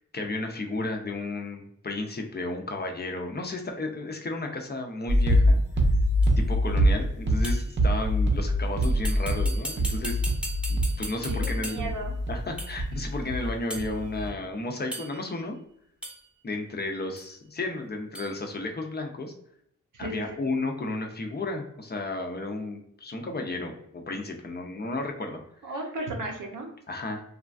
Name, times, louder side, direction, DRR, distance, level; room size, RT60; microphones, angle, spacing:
voice 1, 0.0-5.6 6.4-10.2 10.7-11.9 12.3-15.6 16.4-19.3 20.0-25.4 26.9-27.2, left 2 dB, 35° left, 3 dB, 0.4 m, -33 dB
sound 1, 5.1-13.5 13.8-14.3, equal, 35° right, 0.6 m, -24 dB
sound 2, 6.2-6.3 7.4-7.8 8.8-12.0 12.6-12.9 13.7-13.9 14.9-15.3 16.0-16.3 17.2-17.3 18.1-18.3, right 1 dB, 5° right, 0.7 m, -38 dB
voice 2, 11.2-12.1 19.9-20.4 25.6-26.7, right 1 dB, 90° right, 1 dB, 0.7 m, -35 dB
3.1 x 2.3 x 2.4 m, 0.73 s
wide cardioid pair, 95°, 30 cm